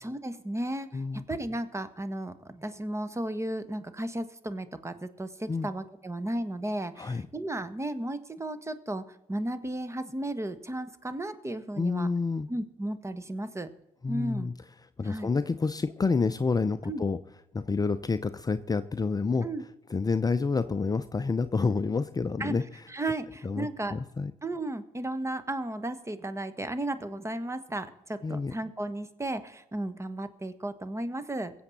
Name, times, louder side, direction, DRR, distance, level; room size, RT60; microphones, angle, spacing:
voice 1, 0.0-12.1 12.5-13.7 14.1-14.5 15.0-15.3 16.8-17.0 19.4-19.6 22.4-22.5 22.9-23.9 24.4-31.5, right 1 dB, 15° right, 12 dB, 1.4 m, -34 dB
voice 2, 0.9-1.2 5.5-5.7 7.0-7.2 11.8-12.5 14.0-14.5 15.0-17.2 17.5-19.5 19.9-22.6 23.4-24.3 28.2-28.5, left 4 dB, 25° left, 11 dB, 0.6 m, -28 dB
22.5 x 8.0 x 4.2 m, 0.92 s
hypercardioid pair, 55°, 16 cm